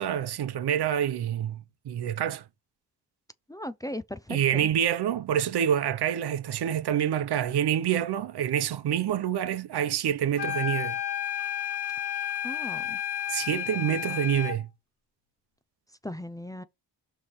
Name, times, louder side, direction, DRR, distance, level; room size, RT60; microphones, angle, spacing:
voice 1, 0.0-2.4 4.3-11.0 13.3-14.7, right 9 dB, 70° right, 0.9 m, -27 dB
voice 2, 3.5-4.7 12.4-13.0 16.0-16.6, left 1 dB, 10° left, 0.6 m, -37 dB
sound 1, 10.4-14.6, left 10 dB, 70° left, 1.5 m, -32 dB
6.4 x 3.3 x 5.6 m
cardioid pair, 90°, 41 cm